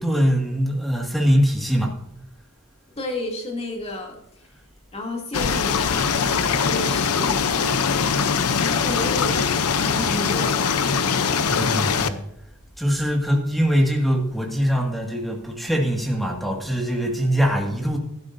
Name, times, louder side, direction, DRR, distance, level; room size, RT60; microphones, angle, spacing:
voice 1, 0.0-2.0 11.5-12.2 12.8-18.0, equal, ahead, 1 dB, 2.0 m, -22 dB
voice 2, 3.0-4.5 4.9-7.5 8.8-10.9, left 2 dB, 30° left, 0 dB, 2.7 m, -32 dB
sound 1, 5.3-12.1, left 6 dB, 90° left, 0.7 m, -22 dB
16.5 x 12.0 x 2.7 m, 0.81 s
head